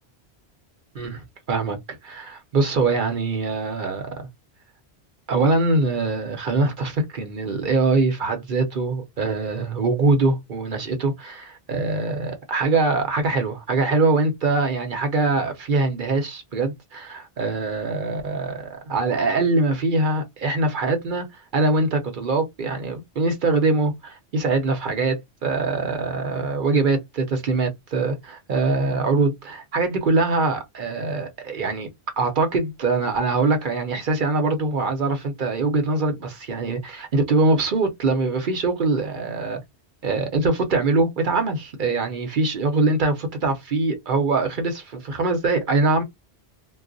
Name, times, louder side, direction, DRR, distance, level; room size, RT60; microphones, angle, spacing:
voice 1, 0.9-1.8 2.0-4.3 5.3-21.3 21.5-31.9 32.2-39.6 40.0-46.0, right 3 dB, 50° right, 0.9 m, -23 dB
2.3 x 2.1 x 3.8 m
omnidirectional pair, 1.1 m